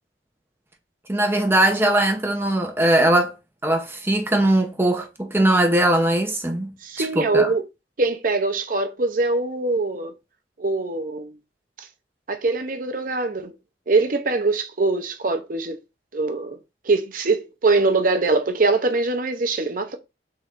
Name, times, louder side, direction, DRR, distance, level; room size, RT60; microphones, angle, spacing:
voice 1, 1.1-3.3 3.6-6.7 7.0-7.5, right 1 dB, 15° right, 0.7 m, -20 dB
voice 2, 6.8-7.6 8.0-10.1 10.6-11.3 11.8-11.9 12.3-13.5 13.9-15.8 16.1-16.6 16.8-20.0, right 3 dB, 50° right, 0.7 m, -22 dB
3.7 x 3.1 x 4.4 m
head